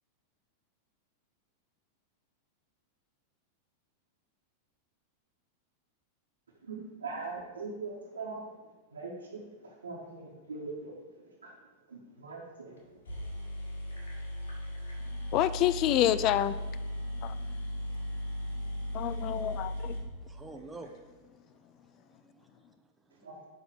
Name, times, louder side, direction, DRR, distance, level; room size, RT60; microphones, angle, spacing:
voice 1, 6.6-8.5 8.9-9.5 9.8-10.9 11.4-11.5 11.9-12.8 23.2-23.4, right 3 dB, 75° right, 1.8 m, -41 dB
sound 1, 12.8-12.9 13.1-20.9, equal, 65° left, 2.3 m, -37 dB
voice 2, 15.3-16.6 17.2-17.4 18.9-20.0, left 12 dB, 40° left, 0.3 m, -27 dB
voice 3, 20.2-22.8 23.1-23.3, right 3 dB, 10° right, 0.9 m, -50 dB
10.0 x 4.2 x 6.3 m
figure-of-eight pair, 90°, 0 cm